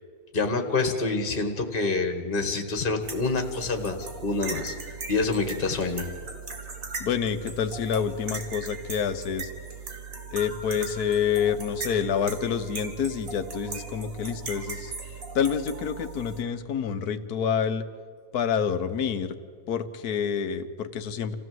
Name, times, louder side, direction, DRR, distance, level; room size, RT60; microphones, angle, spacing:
voice 1, 0.3-6.1, left 3 dB, 35° left, 6 dB, 1.8 m, -27 dB
sound 1, 3.0-16.4, right 4 dB, 55° right, 2.6 m, -39 dB
voice 2, 7.0-9.5 10.3-14.9 15.3-17.8 18.3-19.4 19.7-21.3, left 7 dB, 65° left, 10 dB, 1.5 m, -27 dB
27.5 x 15.5 x 7.8 m, 2.1 s
omnidirectional pair, 1.8 m